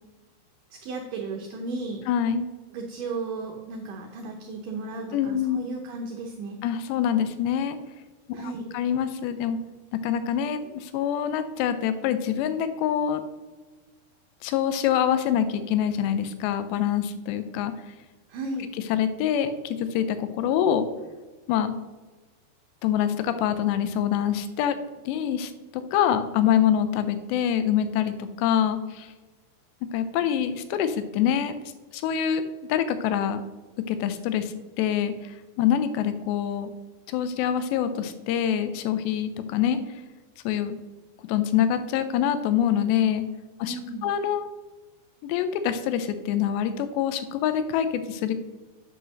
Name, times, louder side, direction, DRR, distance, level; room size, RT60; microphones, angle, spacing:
voice 1, 0.7-2.1 2.7-6.6 8.3-8.7 18.3-18.7 43.6-44.2, right 3 dB, 75° right, 1 dB, 2.0 m, -34 dB
voice 2, 2.1-2.5 5.1-5.6 6.6-7.8 8.3-9.6 9.9-13.2 14.4-17.7 18.9-20.9 21.5-21.7 22.8-24.8 25.1-25.5 25.9-28.1 28.4-29.1 29.9-31.5 31.9-32.4 32.7-33.4 33.9-35.3 35.6-36.7 37.1-39.8 40.5-40.8 41.3-43.3 43.6-43.8 44.0-44.5 45.2-48.3, left 9 dB, 90° left, 10 dB, 2.9 m, -25 dB
8.3 x 5.7 x 6.3 m, 1.3 s
omnidirectional pair, 4.8 m